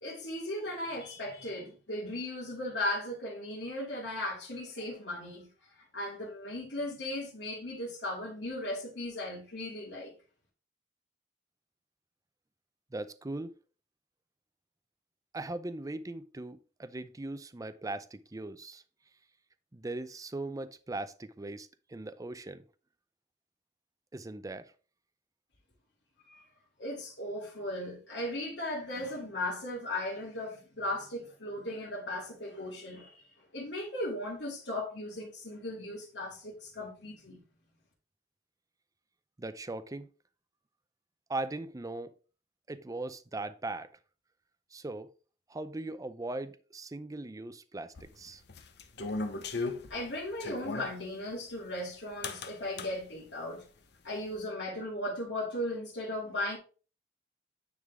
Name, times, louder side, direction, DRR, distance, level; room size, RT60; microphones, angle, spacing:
voice 1, 0.0-10.1 26.3-26.4 26.8-37.4 49.9-53.7 54.0-56.6, left 1 dB, 85° left, 2.4 m, -37 dB
voice 2, 12.9-13.5 15.3-18.8 19.7-22.6 24.1-24.7 39.4-40.1 41.3-42.2 42.7-43.9 44.7-45.1 45.5-48.4, right 2 dB, 20° right, 0.5 m, -39 dB
sound 1, 48.0-50.9 52.2-52.9, left 3 dB, 65° left, 0.9 m, -36 dB
9.4 x 3.8 x 3.6 m
head